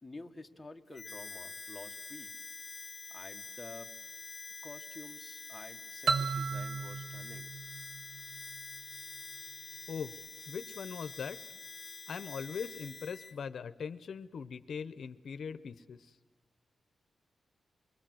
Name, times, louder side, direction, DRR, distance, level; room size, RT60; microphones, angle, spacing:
voice 1, 0.0-2.3 3.1-3.9 4.6-7.5, left 2 dB, 10° left, 2 dB, 1.5 m, -50 dB
Harmonica, 0.9-13.4, left 4 dB, 30° left, 1.1 m, -46 dB
sound 1, 6.1-8.8, right 5 dB, 65° right, 0.9 m, -35 dB
voice 2, 10.5-11.4 12.1-16.2, left 6 dB, 65° left, 11 dB, 0.7 m, -41 dB
28.0 x 22.0 x 7.7 m, 1.4 s
wide cardioid pair, 145°, 0 cm